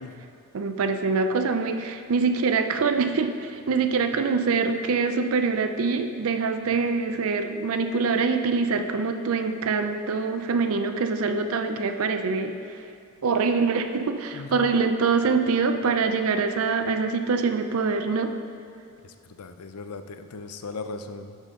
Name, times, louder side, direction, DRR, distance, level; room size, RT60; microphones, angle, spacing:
voice 1, 0.0-0.3 14.3-14.7 19.0-21.4, left 3 dB, 85° left, 9 dB, 0.5 m, -38 dB
voice 2, 0.5-12.5 13.2-18.3, right 4 dB, 70° right, 7 dB, 0.4 m, -24 dB
10.5 x 6.4 x 3.7 m, 2.5 s
head